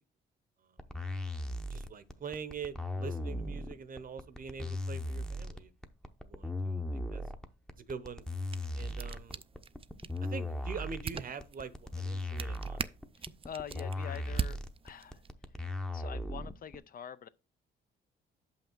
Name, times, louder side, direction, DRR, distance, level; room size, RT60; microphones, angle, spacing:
sound 1, 0.8-16.8, left 1 dB, 5° left, 0.7 m, -37 dB
voice 1, 1.7-5.7 6.2-7.2 7.8-8.2 8.7-9.4 10.2-12.8, right 6 dB, 45° right, 0.8 m, -44 dB
sound 2, 8.2-15.3, right 7 dB, 30° right, 0.4 m, -43 dB
voice 2, 13.2-14.6 14.8-15.2 15.9-17.3, left 8 dB, 45° left, 0.4 m, -45 dB
6.5 x 5.7 x 4.5 m
cardioid pair, 90°, 20 cm